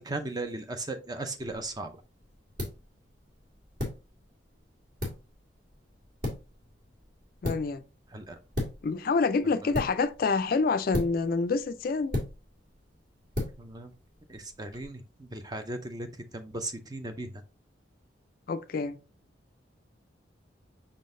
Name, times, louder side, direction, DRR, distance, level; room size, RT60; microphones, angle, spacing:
voice 1, 0.0-2.0 8.1-8.7 9.6-9.7 13.6-13.9 14.3-16.1 16.3-17.4, right 2 dB, 20° right, 0.5 m, -37 dB
sound 1, 1.4-14.8, left 1 dB, 50° right, 1.7 m, -38 dB
voice 2, 7.4-7.8 8.8-12.2 18.5-19.0, left 4 dB, 50° left, 0.4 m, -27 dB
5.5 x 3.7 x 2.6 m
head